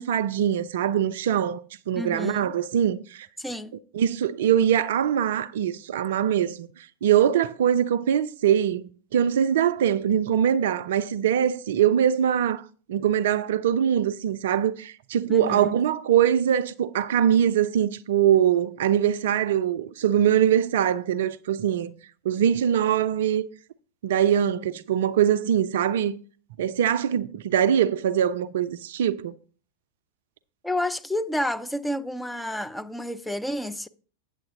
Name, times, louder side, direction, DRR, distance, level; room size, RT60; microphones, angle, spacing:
voice 1, 0.0-3.3 3.9-12.6 12.9-22.0 22.2-23.4 24.0-26.1 26.6-29.3, right 9 dB, 55° right, 0.4 m, -23 dB
voice 2, 2.0-2.5 3.4-3.8 15.3-15.7 30.6-33.9, left 1 dB, 5° left, 0.5 m, -30 dB
8.8 x 7.6 x 3.6 m
figure-of-eight pair, 90°, 0 cm